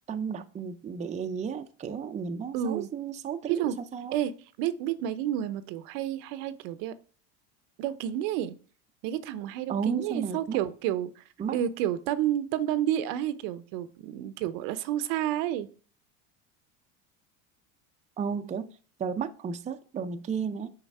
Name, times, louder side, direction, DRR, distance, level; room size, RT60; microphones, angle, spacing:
voice 1, 0.1-4.2 9.7-10.6 11.4-11.6 18.2-18.7 19.0-20.7, right 6 dB, 20° right, 0.5 m, -33 dB
voice 2, 2.5-2.9 3.4-3.8 4.1-4.3 4.6-6.9 7.8-8.5 9.0-11.2 11.5-15.7, right 11 dB, 65° right, 0.7 m, -30 dB
5.8 x 3.9 x 5.4 m
supercardioid pair, 100°, 38 cm